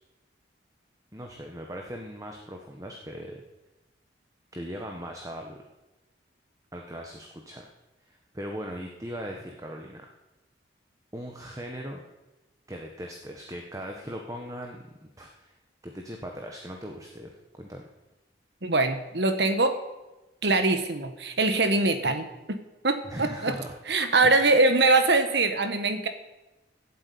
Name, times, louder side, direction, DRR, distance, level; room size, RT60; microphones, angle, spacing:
voice 1, 1.1-3.4 4.5-5.6 6.7-7.6 8.1-10.1 11.1-12.0 12.7-15.6 15.8-17.3 17.6-17.8 23.1-23.7 24.2-24.3, equal, 20° right, 2 dB, 1.3 m, -39 dB
voice 2, 18.6-19.8 20.4-23.5 23.9-26.1, right 3 dB, 65° right, 8 dB, 1.5 m, -23 dB
16.0 x 8.2 x 8.6 m, 1.1 s
head